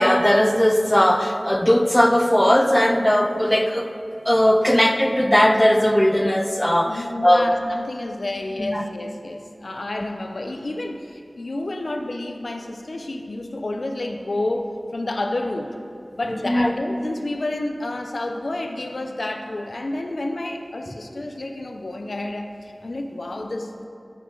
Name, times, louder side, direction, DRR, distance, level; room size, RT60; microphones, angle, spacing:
voice 1, 0.0-3.9 4.3-7.5 8.6-8.8 16.4-16.7, equal, 15° left, 6 dB, 0.6 m, -18 dB
voice 2, 6.9-15.8 16.2-23.8, left 2 dB, 70° left, 4 dB, 0.6 m, -30 dB
13.0 x 5.1 x 4.7 m, 2.4 s
wide cardioid pair, 45°, 0 cm